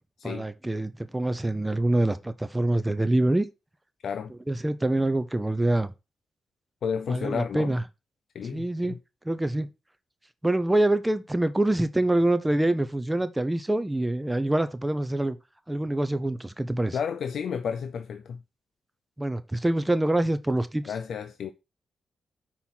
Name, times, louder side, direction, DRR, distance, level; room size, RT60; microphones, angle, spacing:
voice 1, 0.2-3.5 4.5-5.9 7.1-7.8 8.5-9.0 9.2-9.7 10.4-15.4 15.7-17.0 19.2-20.8, right 1 dB, 10° right, 0.7 m, -25 dB
voice 2, 6.8-7.7 8.3-9.0 16.9-18.4 20.9-21.5, left 7 dB, 70° left, 0.5 m, -32 dB
6.1 x 4.3 x 5.7 m
cardioid pair, 85°, 0 cm